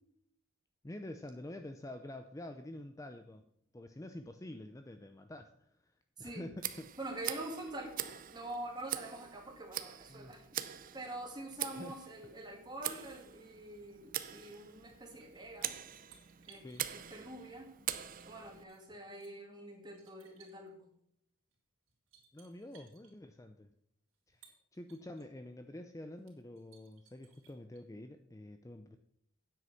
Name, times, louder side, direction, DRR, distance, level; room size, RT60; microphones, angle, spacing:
voice 1, 0.8-3.4 3.7-5.9 6.2-6.5 6.8-6.9 10.1-10.4 11.8-11.9 16.6-16.8 22.3-23.7 24.3-29.0, left 1 dB, 15° left, 7 dB, 0.5 m, -47 dB
voice 2, 6.2-6.5 7.0-10.4 10.9-15.8 16.5-16.7 16.9-17.7 18.2-20.7, right 1 dB, 20° right, 1 dB, 2.4 m, -45 dB
Tick, 6.6-18.6, right 11 dB, 40° right, 0.6 m, -43 dB
sound 1, 14.9-17.5 18.1-19.3 19.9-20.7 21.5-21.6 21.9-23.1 24.1-25.2 25.7-25.8 26.2-27.8, right 7 dB, 75° right, 3.4 m, -64 dB
9.7 x 7.8 x 5.7 m, 0.70 s
head